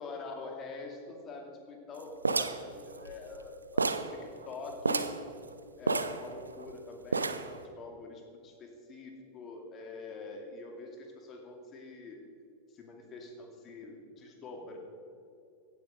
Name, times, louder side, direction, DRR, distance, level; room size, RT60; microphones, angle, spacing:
voice 1, 0.0-5.1 5.8-12.2 12.7-14.8, left 3 dB, 30° left, 2 dB, 2.4 m, -45 dB
sound 1, 2.2-3.5 3.8-4.2 4.4-4.5 4.8-5.2 5.9-6.7 7.1-7.6, right 4 dB, 75° right, 0.6 m, -30 dB
16.5 x 8.8 x 5.2 m, 2.5 s
figure-of-eight pair, 90°, 0 cm